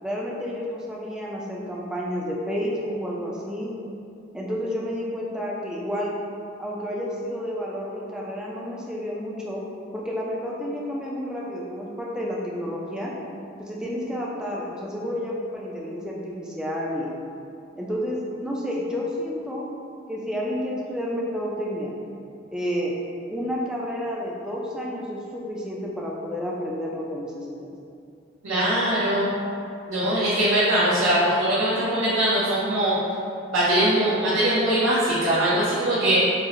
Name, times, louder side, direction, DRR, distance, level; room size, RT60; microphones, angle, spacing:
voice 1, 0.0-3.7 4.3-6.1 6.6-9.6 9.9-13.1 13.6-17.1 17.8-19.7 20.1-21.9 22.5-23.0 23.3-27.7, equal, 5° right, -4 dB, 0.3 m, -30 dB
voice 2, 28.4-29.3 29.9-33.0 33.5-36.2, right 1 dB, 85° right, -10 dB, 0.6 m, -21 dB
4.4 x 2.0 x 2.4 m, 2.6 s
head